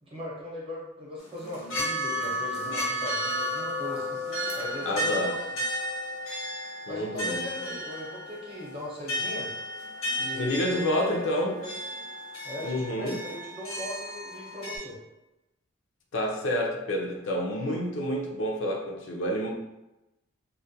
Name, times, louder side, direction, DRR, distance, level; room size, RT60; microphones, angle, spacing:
voice 1, 0.0-4.2 4.6-5.6 6.9-9.5 10.2-11.2 11.6-11.7 12.4-15.0, left 1 dB, 25° right, -5 dB, 0.7 m, -39 dB
sound 1, 1.2-14.8, equal, 85° left, 0.9 m, -33 dB
voice 2, 4.8-5.3 6.9-7.4 10.3-11.6 12.6-13.2 16.1-19.5, equal, 65° left, 1 dB, 0.4 m, -29 dB
2.3 x 2.1 x 2.6 m, 0.96 s
head